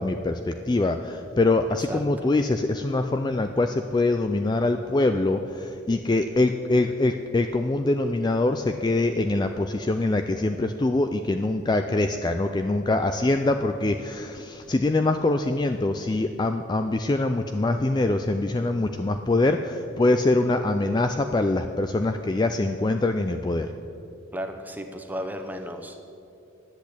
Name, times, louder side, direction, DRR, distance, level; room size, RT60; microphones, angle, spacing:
voice 1, 0.0-23.7, left 2 dB, 20° left, 7 dB, 0.3 m, -24 dB
voice 2, 1.9-2.3 24.3-26.0, equal, 10° right, 5 dB, 0.8 m, -34 dB
10.5 x 8.2 x 8.5 m, 2.8 s
head